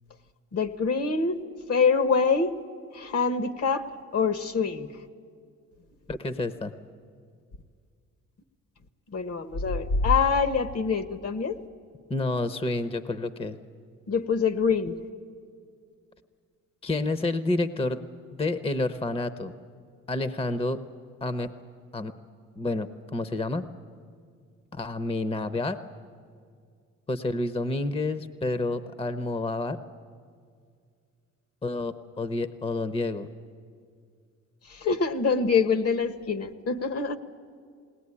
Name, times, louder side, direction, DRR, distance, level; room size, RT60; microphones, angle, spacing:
voice 1, 0.5-1.4 1.7-2.5 2.9-3.8 4.1-4.9 9.1-11.6 14.1-14.9 34.7-37.2, left 5 dB, 55° left, 11 dB, 1.2 m, -25 dB
voice 2, 6.1-6.7 12.1-13.6 16.8-18.0 18.3-19.5 20.1-20.8 21.2-21.5 21.9-22.1 22.6-23.6 24.7-25.8 27.1-29.8 31.6-33.3, left 2 dB, 20° left, 12 dB, 0.8 m, -29 dB
20.5 x 18.5 x 9.8 m, 2.2 s
cardioid pair, 90°, 30 cm